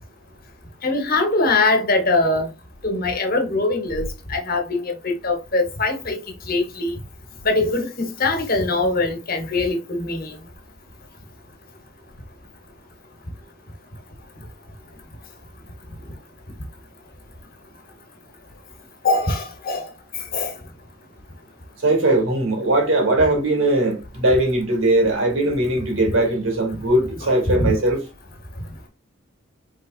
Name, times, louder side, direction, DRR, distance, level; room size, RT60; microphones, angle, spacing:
voice 1, 0.8-2.5 2.8-4.0 4.3-4.9 5.2-6.2 6.5-7.0 7.4-10.3 19.0-19.8 20.3-20.5 27.2-27.3 27.6-27.7, left 2 dB, 45° left, 1.2 m, -22 dB
voice 2, 21.8-28.0, right 1 dB, 80° right, 2.1 m, -20 dB
5.4 x 3.6 x 2.5 m
head